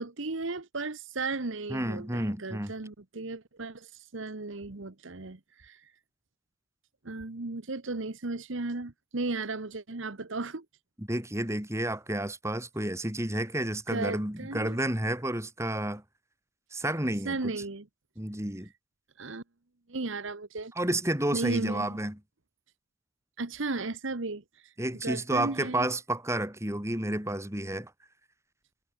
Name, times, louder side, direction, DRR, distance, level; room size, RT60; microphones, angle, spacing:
voice 1, 0.0-5.8 7.0-10.6 13.9-14.8 17.2-17.9 19.2-19.4 19.9-20.7 21.3-21.9 23.4-24.7 25.0-25.9, right 3 dB, 65° right, 1.2 m, -35 dB
voice 2, 1.7-2.7 11.0-16.0 16.7-17.5 18.2-18.7 20.7-22.2 24.8-27.9, right 1 dB, 15° right, 2.9 m, -31 dB
head